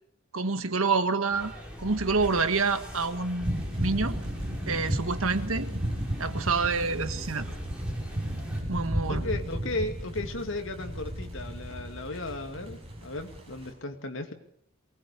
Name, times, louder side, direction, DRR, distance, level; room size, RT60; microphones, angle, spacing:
voice 1, 0.3-1.5 1.8-4.2 4.7-5.7 6.2-7.5 8.7-9.2, right 4 dB, 85° right, 10 dB, 1.6 m, -27 dB
sound 1, 1.3-8.6, equal, 5° right, 6.0 m, -42 dB
sound 2, 3.4-13.7, equal, 30° right, 6.7 m, -34 dB
voice 2, 9.1-14.3, left 2 dB, 65° left, 5 dB, 2.6 m, -35 dB
23.5 x 19.5 x 6.9 m, 0.68 s
head